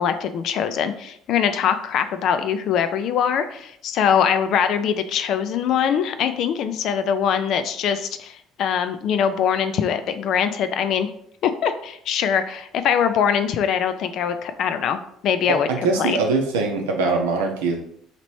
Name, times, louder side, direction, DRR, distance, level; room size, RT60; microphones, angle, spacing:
voice 1, 0.0-11.1 11.4-15.7 16.0-16.2, left 8 dB, 55° left, 9 dB, 0.4 m, -22 dB
voice 2, 15.5-17.8, right 3 dB, 75° right, 2 dB, 0.6 m, -22 dB
2.9 x 2.9 x 4.5 m, 0.69 s
hypercardioid pair, 55°, 0 cm